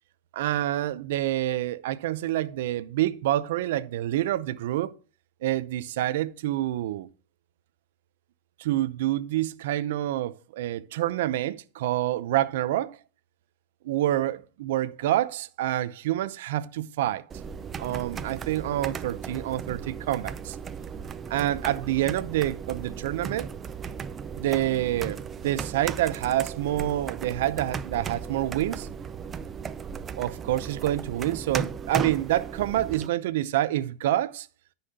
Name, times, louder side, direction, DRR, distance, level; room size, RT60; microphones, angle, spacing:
voice 1, 0.3-4.9 5.4-7.1 8.6-13.0 13.8-17.2 17.8-20.6 21.3-23.5 24.3-28.9 30.1-34.5, right 14 dB, 75° right, 0.6 m, -27 dB
sound 1, 17.3-33.1, right 6 dB, 25° right, 0.5 m, -36 dB
13.5 x 5.6 x 2.8 m
supercardioid pair, 125°, 0 cm